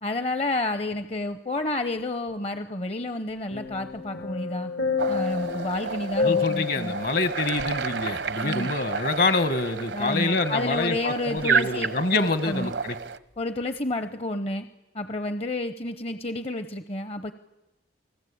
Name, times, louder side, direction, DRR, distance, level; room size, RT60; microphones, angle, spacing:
voice 1, 0.0-4.7 5.1-7.0 8.4-8.7 9.9-11.9 12.4-12.7 13.4-14.7 14.9-17.3, left 2 dB, 35° left, 10 dB, 0.8 m, -30 dB
sound 1, 3.5-8.9 9.3-9.4, left 5 dB, 90° left, 4.0 m, -30 dB
sound 2, 5.0-13.2, right 6 dB, 80° right, 0.9 m, -31 dB
voice 2, 6.2-12.9, left 2 dB, 55° left, 11 dB, 1.5 m, -26 dB
29.5 x 19.5 x 8.6 m, 1.0 s
head